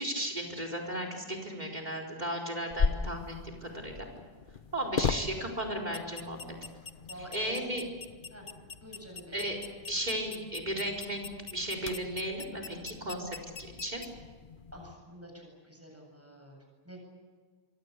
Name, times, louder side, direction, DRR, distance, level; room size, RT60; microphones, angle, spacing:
voice 1, 0.0-4.1 4.7-6.4 7.2-7.8 9.3-9.6 9.9-14.0, right 1 dB, 45° right, 3 dB, 4.6 m, -35 dB
sound 1, 2.7-14.9, left 5 dB, 55° left, 1.2 m, -38 dB
voice 2, 7.1-7.7 8.3-8.5 8.8-9.4 12.7-12.9 14.7-17.0, right 1 dB, 15° right, 1 dB, 8.1 m, -48 dB
25.5 x 23.5 x 8.4 m, 1.5 s
omnidirectional pair, 1.1 m